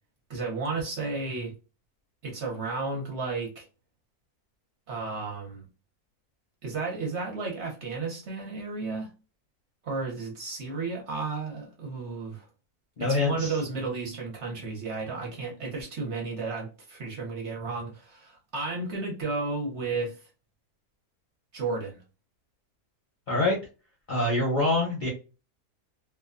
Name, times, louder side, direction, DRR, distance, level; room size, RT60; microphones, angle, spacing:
voice 1, 0.3-1.5 2.2-3.7 4.9-5.7 6.6-9.1 9.8-12.5 13.0-20.2 21.5-22.0, right 3 dB, 55° right, 0.9 m, -33 dB
voice 2, 13.0-13.5 23.3-23.6 24.1-25.1, left 2 dB, 50° left, 0.6 m, -25 dB
2.6 x 2.2 x 2.4 m
omnidirectional pair, 1.6 m